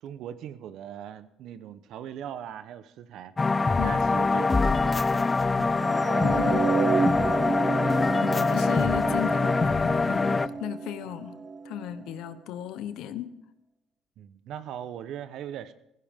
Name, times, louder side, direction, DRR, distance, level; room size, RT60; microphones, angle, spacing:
voice 1, 0.0-3.3 3.8-6.4 8.2-8.4 10.5-10.6 14.2-15.7, right 10 dB, 70° right, 0.9 m, -40 dB
sound 1, 3.4-10.5, left 3 dB, 25° left, 0.5 m, -24 dB
sound 2, 5.9-12.1, right 4 dB, 35° right, 1.0 m, -30 dB
voice 2, 6.2-6.7 8.2-11.4 11.6-13.3, left 11 dB, 75° left, 0.9 m, -35 dB
15.5 x 15.5 x 3.7 m
supercardioid pair, 80°, 0 cm